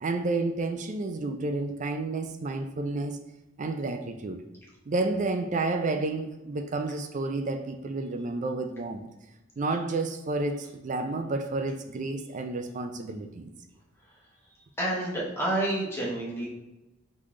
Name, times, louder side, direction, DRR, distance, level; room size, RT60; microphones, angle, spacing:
voice 1, 0.0-3.2 3.6-4.4 4.9-9.1 9.6-13.5, right 3 dB, 40° right, 0.4 m, -30 dB
voice 2, 14.8-16.5, right 1 dB, 15° left, 1.1 m, -29 dB
3.9 x 3.1 x 3.6 m
head